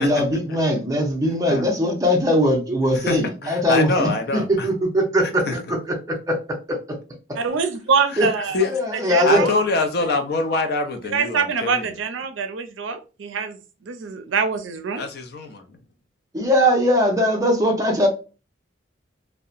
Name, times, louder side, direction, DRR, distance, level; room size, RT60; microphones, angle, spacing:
voice 1, 0.0-6.4 6.7-6.8 8.2-8.3 8.7-9.5 16.3-18.1, equal, 20° right, 0.6 m, -20 dB
voice 2, 2.9-4.7 5.5-5.6 8.1-8.2 8.5-8.7 9.2-11.9 15.0-15.6, left 3 dB, 55° left, 0.5 m, -24 dB
voice 3, 7.4-8.6 9.1-9.6 11.1-15.1, right 5 dB, 80° right, 0.5 m, -25 dB
2.8 x 2.1 x 2.4 m
head